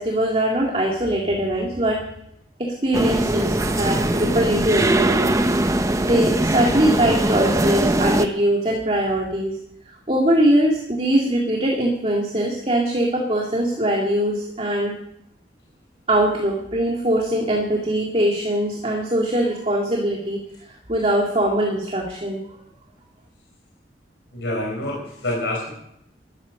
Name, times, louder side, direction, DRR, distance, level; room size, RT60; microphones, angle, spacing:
voice 1, 0.0-2.0 2.6-5.4 6.0-9.6 10.1-15.0 16.1-20.4 20.7-22.4, right 1 dB, 30° right, -1 dB, 2.2 m, -21 dB
sound 1, 2.9-8.3, right 1 dB, 15° right, 0.7 m, -21 dB
voice 2, 24.3-25.7, left 1 dB, 75° left, -2 dB, 4.4 m, -27 dB
14.0 x 12.0 x 6.5 m, 0.78 s
head